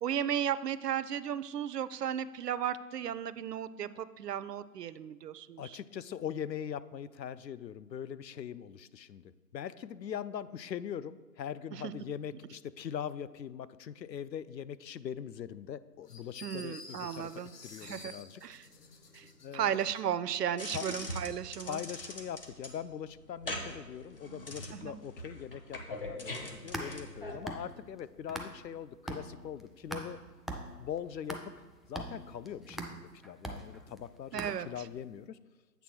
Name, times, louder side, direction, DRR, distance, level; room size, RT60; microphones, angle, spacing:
voice 1, 0.0-5.6 11.8-11.9 16.4-17.5 17.8-18.1 18.4-18.7 19.1-19.2 19.5-21.8 24.8-25.0 34.3-34.7, right 9 dB, 70° right, 15 dB, 0.5 m, -34 dB
voice 2, 5.6-9.2 9.5-18.4 19.4-19.8 20.7-20.9 21.6-30.2 30.8-31.5 31.9-35.4, left 9 dB, 90° left, 16 dB, 0.6 m, -41 dB
sound 1, 16.1-20.0, left 3 dB, 70° left, 1.2 m, -51 dB
sound 2, 20.6-27.4, left 1 dB, 35° left, 0.6 m, -42 dB
sound 3, 26.4-28.8 29.1-35.0, right 1 dB, ahead, 0.3 m, -42 dB
8.2 x 3.5 x 6.0 m, 1.2 s
figure-of-eight pair, 160°, 49 cm